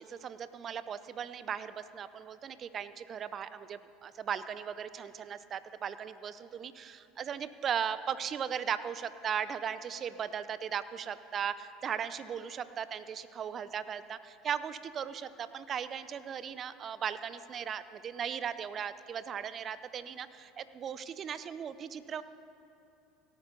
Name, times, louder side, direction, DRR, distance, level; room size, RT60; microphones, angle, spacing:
voice 1, 0.0-22.2, right 8 dB, 40° right, 14 dB, 0.6 m, -37 dB
17.0 x 9.1 x 5.4 m, 2.7 s
hypercardioid pair, 80°, 0 cm